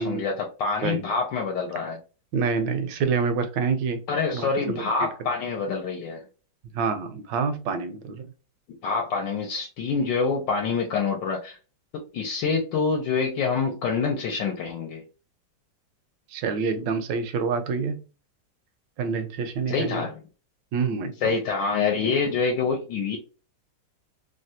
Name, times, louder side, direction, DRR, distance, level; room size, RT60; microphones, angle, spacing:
voice 1, 0.0-2.0 4.1-6.2 8.8-11.6 11.9-15.0 19.7-20.2 21.2-23.2, left 5 dB, 75° left, 1 dB, 1.3 m, -26 dB
voice 2, 2.3-4.0 4.3-4.8 6.7-8.3 16.3-18.0 19.0-20.1 20.7-21.3, right 5 dB, 75° right, 8 dB, 1.2 m, -27 dB
3.2 x 2.2 x 2.6 m, 0.34 s
omnidirectional pair, 2.1 m